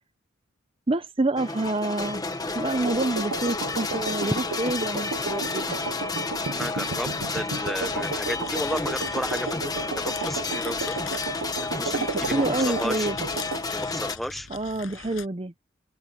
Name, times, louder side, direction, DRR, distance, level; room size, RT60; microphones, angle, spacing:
voice 1, 0.9-5.8 12.1-13.2 14.5-15.5, right 2 dB, 25° right, 0.6 m, -28 dB
sound 1, 1.4-14.2, left 3 dB, 20° left, 1.2 m, -31 dB
sound 2, 2.9-13.7, right 4 dB, 85° right, 0.8 m, -34 dB
voice 2, 6.5-11.0 11.6-13.1 13.7-14.5, equal, ahead, 0.9 m, -33 dB
sound 3, 7.8-15.3, left 6 dB, 75° left, 6.0 m, -43 dB
open air
head